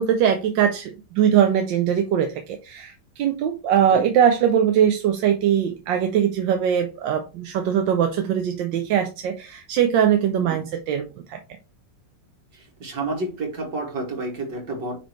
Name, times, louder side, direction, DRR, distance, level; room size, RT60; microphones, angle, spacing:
voice 1, 0.0-11.4, right 9 dB, 85° right, 1.4 m, -21 dB
voice 2, 12.5-15.0, right 2 dB, 70° right, 2.9 m, -30 dB
8.9 x 3.4 x 3.1 m
omnidirectional pair, 2.0 m